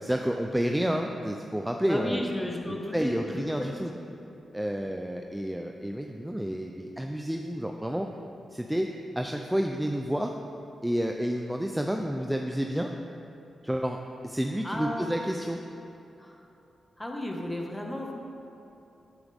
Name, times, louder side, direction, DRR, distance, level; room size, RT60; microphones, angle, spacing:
voice 1, 0.0-2.2 2.7-3.9 4.5-8.1 8.5-8.9 9.2-10.3 10.8-12.9 13.6-14.0 14.2-15.6, equal, 5° right, 3 dB, 0.6 m, -30 dB
voice 2, 1.8-4.2 14.6-15.4 16.2-16.4 17.0-18.1, left 1 dB, 15° left, 0 dB, 1.6 m, -34 dB
10.5 x 9.0 x 3.6 m, 2.9 s
cardioid pair, 55°, 0 cm